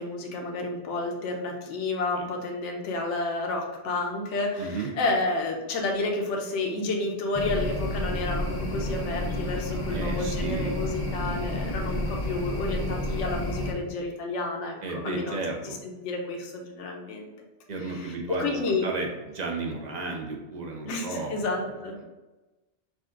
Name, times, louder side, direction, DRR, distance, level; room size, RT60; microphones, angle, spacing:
voice 1, 0.0-15.4 15.6-17.3 17.8-18.9 20.9-22.0, left 2 dB, 75° left, 1 dB, 1.0 m, -30 dB
voice 2, 4.6-4.9 9.9-10.8 14.8-15.8 17.7-21.4, right 3 dB, 45° right, 1 dB, 0.7 m, -33 dB
sound 1, 7.3-13.7, left 1 dB, 35° left, 0.4 m, -30 dB
5.0 x 2.4 x 3.8 m, 1.1 s
omnidirectional pair, 1.2 m